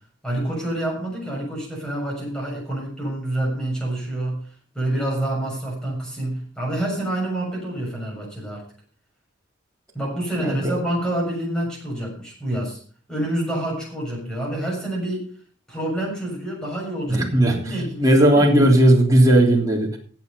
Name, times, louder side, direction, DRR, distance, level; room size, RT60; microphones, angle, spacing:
voice 1, 0.2-4.4 4.8-8.6 9.9-12.8 13.1-15.3 15.7-18.5, right 1 dB, 5° left, -3 dB, 7.1 m, -27 dB
voice 2, 10.4-10.8 17.1-20.0, right 1 dB, 20° right, -2 dB, 3.2 m, -17 dB
16.5 x 7.6 x 5.4 m, 0.42 s
head